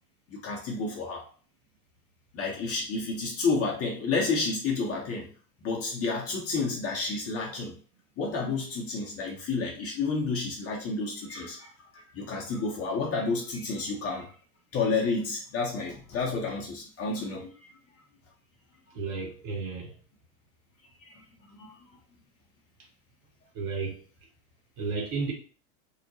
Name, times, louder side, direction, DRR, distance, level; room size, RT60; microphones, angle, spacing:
voice 1, 0.3-1.3 2.3-5.3 5.6-7.7 8.2-14.3 14.7-17.6 21.0-21.7, left 4 dB, 30° left, 0.8 m, -30 dB
voice 2, 18.9-19.9 23.5-24.0 24.8-25.3, right 4 dB, 45° right, 1.0 m, -32 dB
2.8 x 2.1 x 2.7 m
hypercardioid pair, 85°, 48 cm